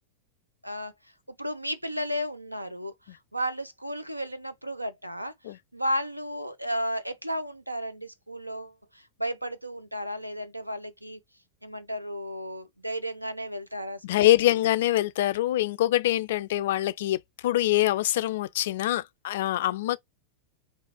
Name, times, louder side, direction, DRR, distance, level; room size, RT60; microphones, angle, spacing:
voice 1, 1.3-5.3 5.7-11.2 11.6-14.3, equal, 90° right, 0.6 m, -33 dB
voice 2, 14.0-20.0, left 14 dB, 55° left, 0.3 m, -24 dB
4.5 x 2.9 x 2.9 m
figure-of-eight pair, 90°, 0 cm